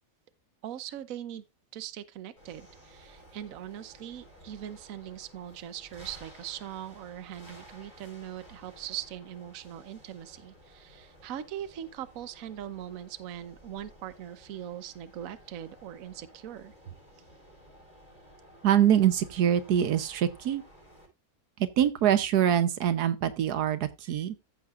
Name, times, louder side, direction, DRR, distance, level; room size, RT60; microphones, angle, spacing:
voice 1, 0.6-1.4 1.7-16.7, right 11 dB, 65° right, 1.1 m, -41 dB
sound 1, 2.4-21.1, equal, 30° left, 5.3 m, -54 dB
voice 2, 18.6-20.6 21.6-24.3, right 10 dB, 80° right, 1.4 m, -24 dB
14.5 x 6.6 x 2.5 m
omnidirectional pair, 1.7 m